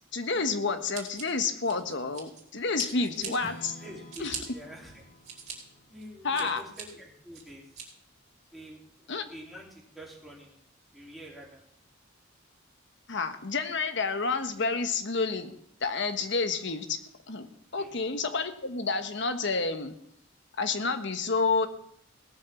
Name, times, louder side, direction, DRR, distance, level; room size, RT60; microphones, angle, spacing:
voice 1, 0.1-3.5 4.2-4.3 6.2-6.6 9.1-9.2 13.1-15.5 15.8-17.0 17.3-17.5 17.7-19.9 20.6-21.7, left 4 dB, 60° left, 8 dB, 1.3 m, -29 dB
Scissors, 0.9-2.4 2.7-3.3 3.8-4.4 4.9-5.5 6.0-6.8 7.3-7.8, right 7 dB, 35° right, 4.1 m, -41 dB
Strum, 3.4-7.3, left 1 dB, 45° left, 1.8 m, -51 dB
voice 2, 3.8-5.1 5.9-7.7 8.5-10.6 10.9-11.6 17.8-18.0, right 1 dB, ahead, -4 dB, 3.7 m, -47 dB
17.5 x 7.2 x 7.2 m, 0.70 s
head